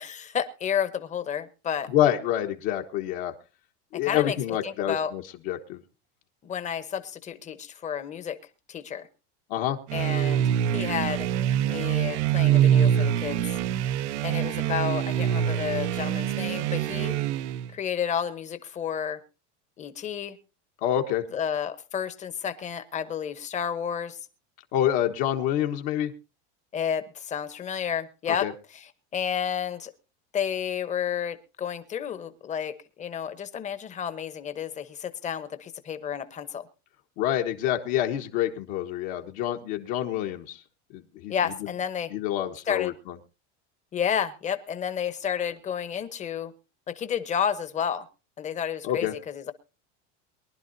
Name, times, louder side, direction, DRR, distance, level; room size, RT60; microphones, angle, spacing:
voice 1, 0.0-1.9 4.1-4.4 4.6-5.1 6.4-8.4 8.7-9.1 9.9-11.3 11.6-13.4 14.2-17.2 17.7-19.2 19.8-20.4 21.3-24.2 26.7-28.5 28.7-29.9 30.3-36.7 41.3-42.1 42.7-42.9 43.9-46.5 46.9-48.0 48.4-49.5, left 8 dB, 20° left, 12 dB, 1.0 m, -31 dB
voice 2, 1.9-3.3 3.9-5.8 9.5-9.8 20.8-21.2 24.7-26.1 28.4-28.5 37.2-40.6 40.9-41.3 42.1-43.1 48.8-49.1, left 11 dB, 60° left, 3 dB, 1.4 m, -27 dB
sound 1, 9.9-17.7, right 10 dB, 90° right, 0.8 m, -25 dB
23.0 x 11.5 x 2.7 m, 0.30 s
supercardioid pair, 155°, 34 cm